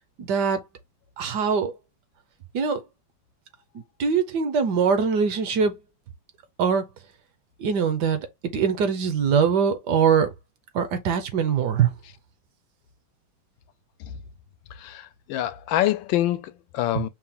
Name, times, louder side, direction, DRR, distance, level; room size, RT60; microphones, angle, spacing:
voice 1, 0.2-0.6 1.2-1.7 2.5-2.8 4.0-5.7 6.6-6.9 7.6-8.3 8.5-10.3 10.7-11.9 16.9-17.0, right 6 dB, 65° right, 1.3 m, -22 dB
voice 2, 14.8-17.1, left 13 dB, 80° left, 1.3 m, -26 dB
5.8 x 2.3 x 3.6 m
omnidirectional pair, 2.1 m